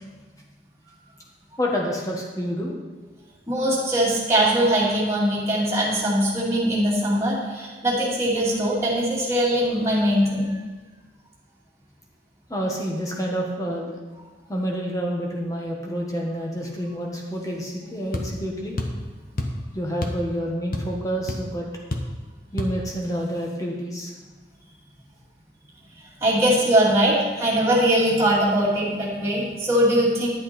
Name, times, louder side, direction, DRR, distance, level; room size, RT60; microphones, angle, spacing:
voice 1, 1.6-2.7 12.5-13.9 14.5-18.8 19.7-21.7 22.5-24.1, equal, 20° left, -1 dB, 1.6 m, -28 dB
voice 2, 3.5-10.5 26.2-30.3, right 1 dB, 15° right, -8 dB, 2.6 m, -21 dB
sound 1, 18.1-18.3 18.8-19.0 19.4-19.6 20.0-20.3 20.5-21.0 21.3-21.4 21.9-22.1 22.6-22.8, left 1 dB, 50° left, 1.0 m, -28 dB
10.5 x 8.7 x 4.4 m, 1.3 s
head